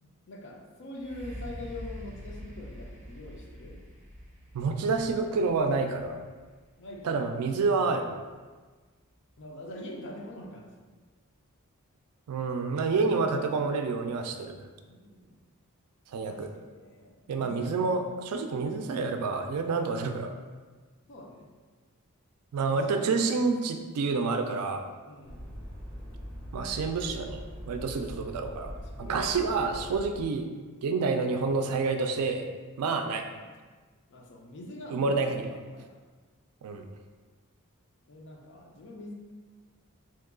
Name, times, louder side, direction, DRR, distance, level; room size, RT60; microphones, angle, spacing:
voice 1, 0.0-3.8 6.8-7.3 9.4-10.7 14.9-15.4 16.1-17.8 21.1-21.5 22.5-23.0 25.1-25.4 28.8-29.8 33.3-33.4 34.1-36.0 38.1-39.1, left 1 dB, 55° left, 0 dB, 0.5 m, -44 dB
sound 1, 0.9-8.7 9.3-9.4, equal, 35° right, 0.8 m, -46 dB
voice 2, 4.5-6.2 7.0-8.0 12.3-14.7 16.1-16.5 17.3-20.3 22.5-24.9 26.5-30.5 30.8-32.5 32.8-33.2 34.9-35.4 36.6-36.8, right 4 dB, 85° right, 6 dB, 0.3 m, -28 dB
sound 2, 25.2-30.2, equal, 5° left, 0.6 m, -42 dB
2.9 x 2.3 x 3.6 m, 1.4 s
head